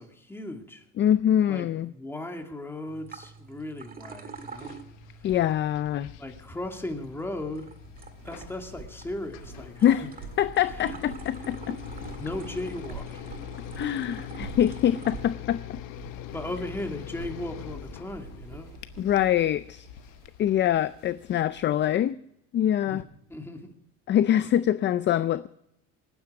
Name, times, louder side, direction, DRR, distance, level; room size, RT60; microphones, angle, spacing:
voice 1, 0.0-0.9 1.5-4.7 6.2-7.7 8.2-10.1 10.7-11.0 12.2-13.3 16.3-18.7 22.8-23.0 23.3-23.7, left 1 dB, 5° left, 2.3 m, -37 dB
voice 2, 1.0-1.9 5.2-6.1 9.8-10.1 10.4-11.8 13.8-15.8 19.0-19.9 20.4-22.2 22.5-23.0 24.1-25.5, left 11 dB, 35° left, 0.5 m, -24 dB
sound 1, 2.9-15.2, right 5 dB, 30° right, 1.8 m, -46 dB
sound 2, 4.4-21.4, left 13 dB, 80° left, 1.0 m, -43 dB
sound 3, 7.8-22.0, right 7 dB, 85° right, 2.1 m, -47 dB
26.0 x 9.8 x 4.7 m
cardioid pair, 130°, 32 cm